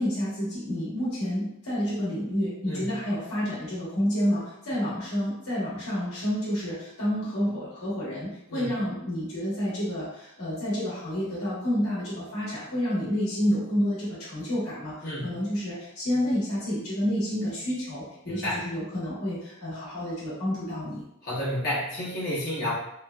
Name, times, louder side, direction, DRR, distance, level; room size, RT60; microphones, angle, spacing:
voice 1, 0.0-21.0, equal, 80° left, -8 dB, 1.2 m, -29 dB
voice 2, 18.3-18.6 21.2-22.7, left 1 dB, 45° left, -10 dB, 1.2 m, -30 dB
3.0 x 2.3 x 2.2 m, 0.82 s
head